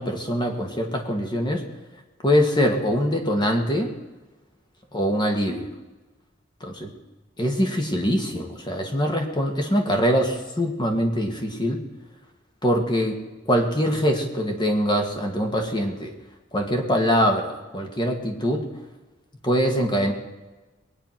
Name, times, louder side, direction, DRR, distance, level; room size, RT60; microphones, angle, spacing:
voice 1, 0.0-1.6 2.2-3.9 4.9-5.7 6.6-6.9 7.4-11.8 12.6-13.2 13.5-16.1 16.5-18.7 19.4-20.1, equal, 25° left, 3 dB, 2.2 m, -23 dB
21.0 x 9.7 x 6.0 m, 1.2 s
head